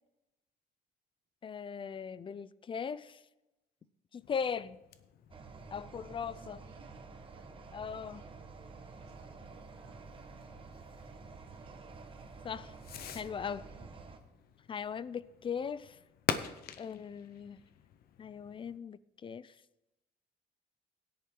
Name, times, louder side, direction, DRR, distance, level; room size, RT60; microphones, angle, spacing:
voice 1, 1.4-3.2 4.1-4.8 5.7-6.6 7.7-8.2 12.4-12.7 13.1-13.6 14.7-16.0 16.8-17.6 18.2-19.5, left 7 dB, 30° left, 0.5 m, -39 dB
Fireworks, 4.2-18.8, left 9 dB, 65° left, 1.0 m, -46 dB
sound 1, 5.3-14.2, right 4 dB, 30° right, 1.5 m, -50 dB
voice 2, 6.2-10.0 10.9-11.2 11.5-12.0 13.4-14.2, right 7 dB, 75° right, 2.4 m, -64 dB
16.5 x 10.5 x 3.9 m
cardioid pair, 110°, 17 cm